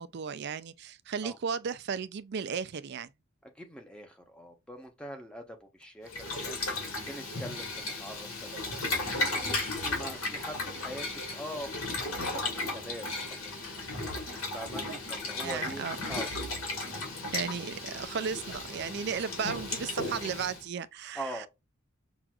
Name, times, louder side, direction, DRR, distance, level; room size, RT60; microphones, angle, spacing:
voice 1, 0.0-3.1 15.4-16.0 17.3-21.4, right 6 dB, 50° right, 0.4 m, -35 dB
voice 2, 3.4-16.3 17.5-17.6 21.1-21.5, equal, 5° left, 0.8 m, -44 dB
sound 1, 4.8-4.9 5.8-5.9 7.3-7.5 8.5-8.7 9.5-9.7 10.6-10.9 11.5-11.7 12.4-12.5 13.2-13.4 14.1-14.2 14.9-15.0 15.7-15.8 16.6-16.7 17.6-17.7 18.5-18.6 19.1-19.2, right 4 dB, 70° right, 1.0 m, -51 dB
Boiling, 6.1-20.6, left 2 dB, 80° left, 1.9 m, -35 dB
6.0 x 2.5 x 2.3 m
head